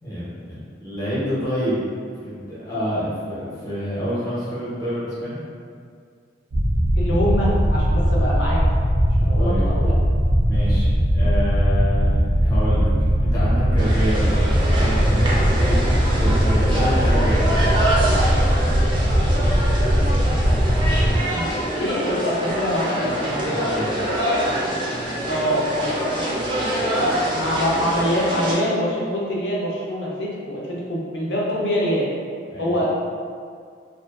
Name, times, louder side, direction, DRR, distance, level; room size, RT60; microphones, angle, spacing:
voice 1, 0.0-1.8 2.2-5.4 9.4-9.7 10.5-12.9 13.2-14.3 14.6-15.1 15.5-17.5 23.4-24.0 32.5-32.8, equal, 20° left, -10 dB, 0.6 m, -28 dB
sound 1, 6.5-21.2, equal, 85° right, 0.5 m, -19 dB
voice 2, 7.0-8.6 9.2-9.9 21.3-23.6 25.3-26.2 27.3-32.1 32.6-32.9, equal, 75° left, -5 dB, 0.6 m, -24 dB
sound 2, 13.8-28.5, right 1 dB, 25° right, 0.4 m, -25 dB
2.5 x 2.4 x 2.3 m, 2.2 s
head